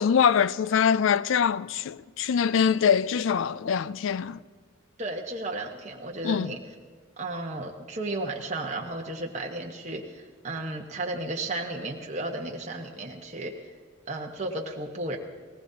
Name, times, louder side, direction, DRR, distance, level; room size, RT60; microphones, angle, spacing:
voice 1, 0.0-4.4 6.2-6.6, left 7 dB, 65° left, 0.3 m, -24 dB
voice 2, 5.0-6.6 7.2-13.5 14.1-15.2, right 2 dB, 35° right, 1.1 m, -34 dB
19.5 x 19.0 x 2.8 m
head